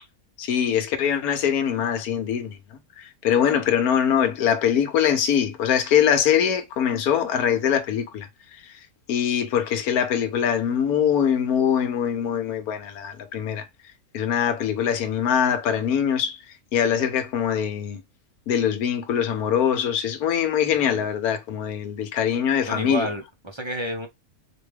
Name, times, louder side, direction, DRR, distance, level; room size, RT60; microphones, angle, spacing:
voice 1, 0.4-2.6 3.0-8.3 9.1-13.7 14.1-16.4 16.7-18.0 18.5-23.1, left 8 dB, 75° left, 1.2 m, -23 dB
voice 2, 22.7-24.1, right 1 dB, 45° right, 0.3 m, -30 dB
4.7 x 2.3 x 3.2 m
omnidirectional pair, 1.6 m